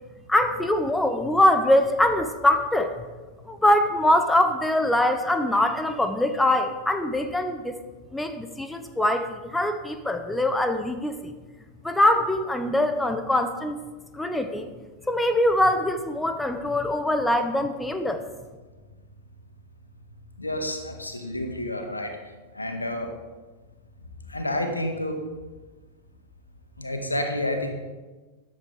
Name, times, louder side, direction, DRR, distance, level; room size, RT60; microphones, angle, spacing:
voice 1, 0.3-2.9 3.5-7.7 8.1-11.3 11.8-13.8 14.1-14.7 15.1-18.2, left 1 dB, 5° left, 7 dB, 1.0 m, -23 dB
voice 2, 20.4-22.1 22.6-23.1 24.3-25.2 26.8-27.7, left 1 dB, 85° left, 4 dB, 1.8 m, -29 dB
14.0 x 9.8 x 5.1 m, 1.3 s
figure-of-eight pair, 90°, 0 cm